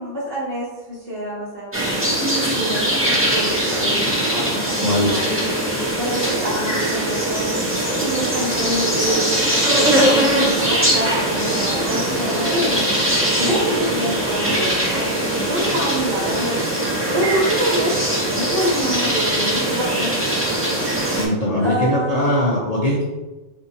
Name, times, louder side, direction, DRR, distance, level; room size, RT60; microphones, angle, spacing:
voice 1, 0.0-2.0 2.5-5.4 6.0-9.3 9.7-12.9 13.3-16.8 17.1-18.0 18.2-20.4 21.6-22.2, right 1 dB, 45° right, -9 dB, 1.1 m, -26 dB
sound 1, 1.7-21.3, right 1 dB, 15° right, 0.5 m, -21 dB
voice 2, 4.8-5.2 13.4-13.5 21.1-23.0, left 1 dB, 65° left, -6 dB, 0.3 m, -21 dB
4.4 x 2.7 x 2.7 m, 1.1 s
omnidirectional pair, 1.5 m